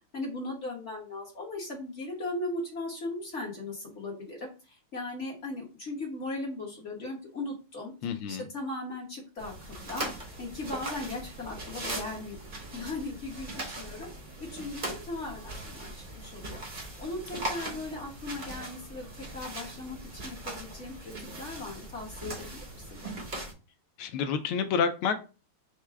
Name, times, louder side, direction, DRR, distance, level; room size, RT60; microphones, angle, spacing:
voice 1, 0.1-9.5 9.9-12.4 12.7-14.1 14.4-16.6 17.0-22.6 22.9-23.1, left 2 dB, 45° left, -2 dB, 1.1 m, -38 dB
voice 2, 8.0-8.4 24.0-25.2, left 6 dB, 80° left, 9 dB, 1.4 m, -28 dB
sound 1, 9.4-23.5, right 1 dB, 40° right, 0.6 m, -40 dB
4.7 x 2.1 x 4.4 m, 0.32 s
omnidirectional pair, 2.4 m